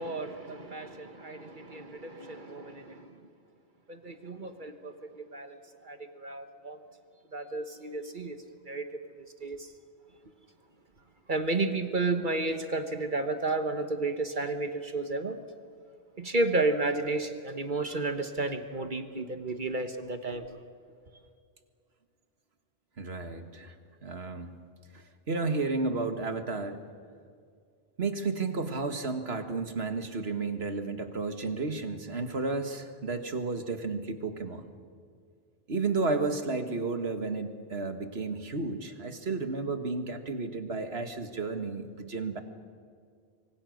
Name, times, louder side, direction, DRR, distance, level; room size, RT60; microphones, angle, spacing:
voice 1, 0.0-3.1 3.9-5.6 5.8-6.8 7.3-8.4 8.7-8.9 9.4-9.7 11.3-15.4 16.2-20.4, right 2 dB, 50° right, 7 dB, 1.4 m, -32 dB
voice 2, 23.0-23.7 24.0-24.5 24.9-26.8 28.0-34.7 35.7-42.4, right 3 dB, 80° right, 7 dB, 2.0 m, -32 dB
26.0 x 23.5 x 6.5 m, 2.2 s
omnidirectional pair, 1.1 m